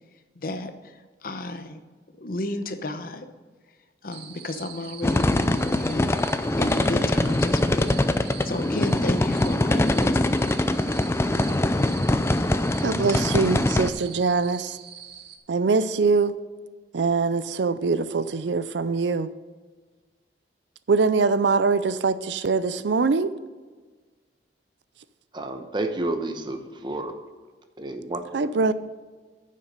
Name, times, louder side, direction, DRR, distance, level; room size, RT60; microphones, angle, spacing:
voice 1, 0.3-1.8 2.2-3.3 4.0-10.4, left 1 dB, 55° left, 0.8 m, -33 dB
sound 1, 4.1-15.4, right 8 dB, 65° right, 1.0 m, -43 dB
sound 2, 5.0-13.9, left 1 dB, 15° left, 0.4 m, -23 dB
voice 2, 12.8-14.8 15.5-16.4 16.9-19.3 20.9-23.3 28.3-28.7, right 4 dB, 80° right, 0.5 m, -23 dB
voice 3, 25.3-27.1 27.8-28.7, right 2 dB, 25° right, 0.9 m, -31 dB
9.7 x 7.5 x 5.2 m
head